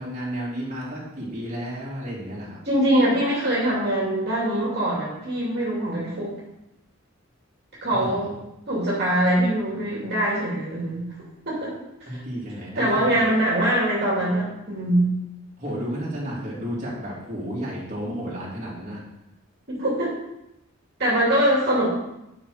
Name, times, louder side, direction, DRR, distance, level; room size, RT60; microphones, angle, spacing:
voice 1, 0.0-2.6 7.9-8.3 12.1-13.5 15.6-19.0, equal, 35° right, -7 dB, 3.0 m, -32 dB
voice 2, 2.7-6.3 7.8-8.3 8.7-11.1 11.5-11.7 12.0-12.2 12.8-15.1 19.7-20.1 21.0-21.9, right 1 dB, 55° right, -6 dB, 2.7 m, -23 dB
9.1 x 6.0 x 5.1 m, 0.90 s
head